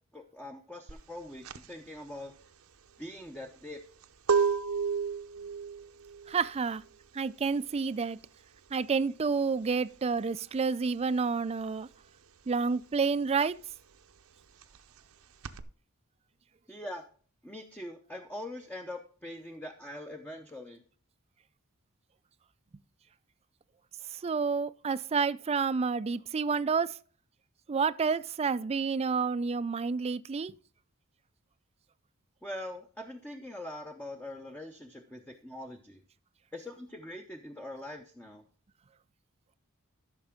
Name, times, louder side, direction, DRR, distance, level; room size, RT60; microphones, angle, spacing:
voice 1, 0.1-2.3 3.0-3.8 16.7-17.0 17.4-20.8 32.4-36.0 36.5-38.4, left 1 dB, 10° left, 0.7 m, -43 dB
sound 1, 0.9-11.1 11.4-15.6, right 6 dB, 80° right, 0.7 m, -34 dB
voice 2, 6.3-6.8 7.1-8.2 8.7-11.9 12.5-13.6 24.1-27.0 27.7-30.5, right 5 dB, 30° right, 0.4 m, -29 dB
13.0 x 6.0 x 3.6 m
head